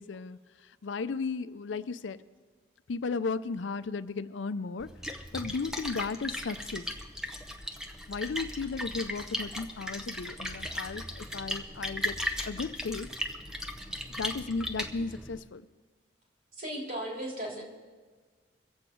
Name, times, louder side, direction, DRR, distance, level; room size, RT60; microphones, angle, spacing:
voice 1, 0.0-2.2 2.9-4.9 5.1-6.9 8.1-12.2 12.5-13.1 13.9-15.7, left 4 dB, 85° left, 13 dB, 0.5 m, -35 dB
Splash splatter, 4.8-15.4, left 1 dB, 5° right, 0.7 m, -37 dB
voice 2, 16.6-17.6, right 1 dB, 50° right, -2 dB, 3.4 m, -36 dB
23.5 x 8.0 x 4.6 m, 1.5 s
head